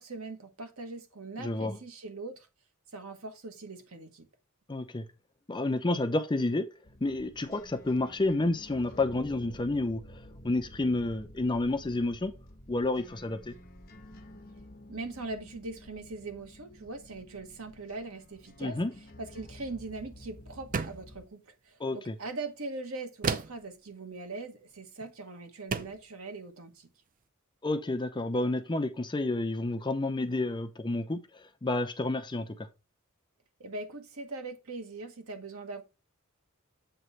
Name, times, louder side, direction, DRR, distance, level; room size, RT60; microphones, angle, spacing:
voice 1, 0.0-2.5 2.9-4.3 14.9-18.8 19.2-26.9 33.6-35.8, right 3 dB, 70° right, 1.3 m, -41 dB
voice 2, 1.4-1.8 4.7-5.1 5.5-6.7 7.0-12.3 12.7-13.5 18.6-18.9 21.8-22.1 27.6-32.7, left 2 dB, 20° left, 0.5 m, -30 dB
sound 1, 6.8-21.3, equal, 45° left, 1.1 m, -51 dB
sound 2, 20.7-21.2 23.2-23.7 25.0-25.2 25.7-26.1, right 5 dB, 40° right, 0.5 m, -32 dB
7.9 x 3.0 x 5.5 m
head